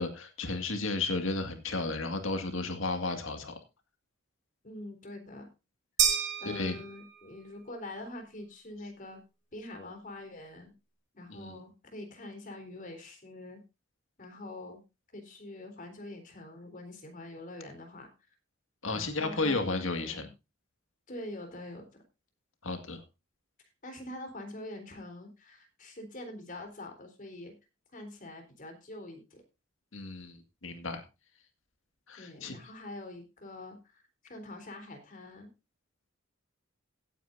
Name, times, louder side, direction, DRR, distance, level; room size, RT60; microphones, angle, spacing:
voice 1, 0.0-3.5 6.5-6.8 11.3-11.6 18.8-20.3 22.6-23.0 29.9-31.0 32.1-32.6, left 3 dB, 70° left, 6 dB, 2.1 m, -33 dB
voice 2, 4.6-5.5 6.4-9.2 9.5-10.7 11.1-13.6 14.2-14.8 15.1-18.1 18.9-20.3 21.1-21.9 23.8-27.5 27.9-29.4 32.2-35.5, left 1 dB, 45° left, 5 dB, 3.8 m, -44 dB
sound 1, 6.0-7.4, right 8 dB, 60° right, 2.9 m, -30 dB
16.5 x 9.3 x 2.7 m, 0.27 s
head